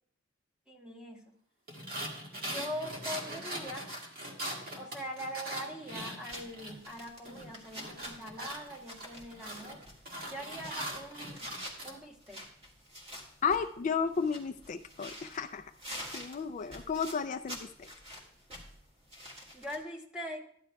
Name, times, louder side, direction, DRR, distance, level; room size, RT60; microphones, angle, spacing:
voice 1, 0.7-1.3 2.4-3.9 4.7-9.8 10.3-11.5 11.8-12.4 19.5-20.5, equal, 5° right, 1 dB, 1.1 m, -42 dB
sound 1, 1.7-7.0 7.2-11.9, right 1 dB, 50° right, 1.9 m, -41 dB
sound 2, 6.3-19.8, equal, 30° right, 2.0 m, -48 dB
voice 2, 13.4-15.7 16.1-17.9, left 5 dB, 40° left, 6 dB, 0.3 m, -33 dB
14.0 x 10.5 x 2.3 m, 0.64 s
head